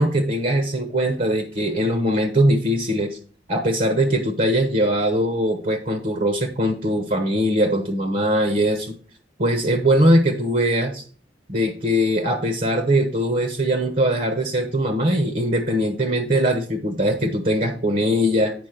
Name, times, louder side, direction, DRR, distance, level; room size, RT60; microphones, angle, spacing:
voice 1, 0.0-3.2 3.5-8.9 9.4-11.0 11.5-18.5, equal, 50° right, 5 dB, 1.1 m, -21 dB
9.6 x 5.2 x 5.1 m, 0.42 s
head